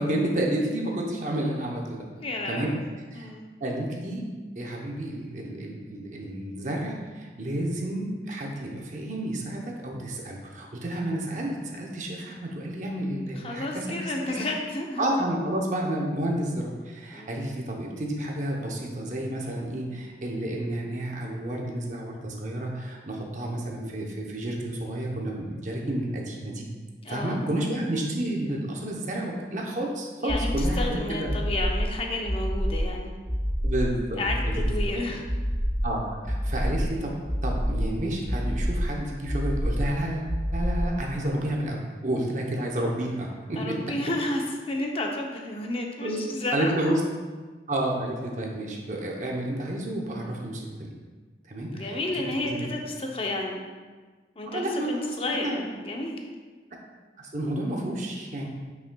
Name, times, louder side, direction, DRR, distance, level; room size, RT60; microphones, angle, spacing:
voice 1, 0.0-2.1 2.5-2.7 3.1-3.3 3.6-4.2 4.6-14.4 15.0-26.7 27.1-31.3 33.6-34.7 35.8-37.1 37.4-43.8 46.0-46.2 46.5-47.0 47.7-50.9 51.5-52.7 54.5-55.6 57.2-58.5, right 1 dB, 45° right, -1 dB, 0.8 m, -30 dB
voice 2, 2.2-2.8 3.1-3.5 13.4-15.3 17.1-17.4 27.0-27.4 30.2-33.1 34.2-35.2 43.6-46.9 51.7-53.6 54.4-56.2, left 2 dB, 30° left, 1 dB, 0.7 m, -31 dB
sound 1, 30.3-30.9 31.3-31.9 32.3-32.9 33.3-33.9 34.3-34.9 35.3-35.9 36.3-36.9 37.3-37.9 38.3-38.9 39.3-39.9 40.3-40.9, equal, ahead, 0.9 m, -27 dB
8.1 x 5.7 x 2.3 m, 1.4 s
head